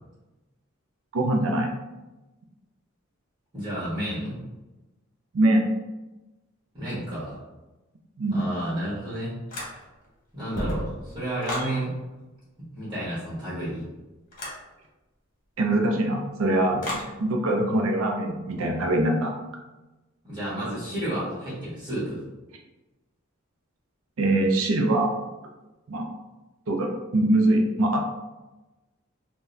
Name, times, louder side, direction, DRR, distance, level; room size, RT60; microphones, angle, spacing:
voice 1, 1.1-1.7 5.3-5.7 8.2-8.4 15.6-19.3 24.2-25.1 25.9-26.1 26.7-28.0, right 1 dB, 75° right, 2 dB, 0.5 m, -23 dB
voice 2, 3.5-4.4 6.7-7.4 8.3-9.3 10.3-11.9 12.7-13.8 20.2-22.2, right 1 dB, 20° right, -11 dB, 1.5 m, -31 dB
sound 1, 9.5-10.1 10.4-11.7 14.3-14.6 16.8-17.1, left 1 dB, 45° left, 1.0 m, -33 dB
3.9 x 2.2 x 2.6 m, 1.1 s
head